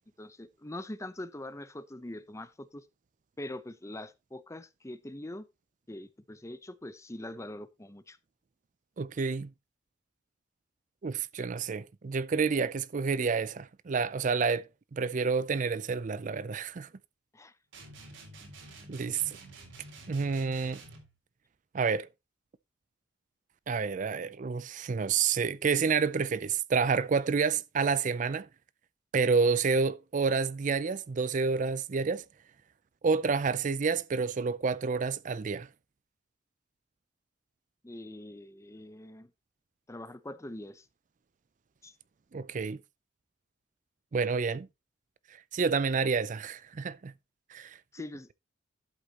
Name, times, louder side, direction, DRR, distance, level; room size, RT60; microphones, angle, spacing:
voice 1, 0.2-2.8 3.4-5.5 5.9-8.2 17.3-17.5 37.8-39.3 39.9-40.9 41.8-41.9 47.9-48.3, left 1 dB, 15° left, 0.7 m, -43 dB
voice 2, 9.0-9.5 11.0-16.9 18.9-19.4 20.1-20.8 21.7-22.1 23.7-28.5 29.1-32.2 33.0-35.7 42.3-42.8 44.1-44.7 45.5-47.1 47.5-47.8, right 5 dB, 40° right, 0.4 m, -29 dB
sound 1, 17.7-21.1, right 2 dB, 80° right, 3.8 m, -49 dB
11.5 x 8.1 x 2.9 m
head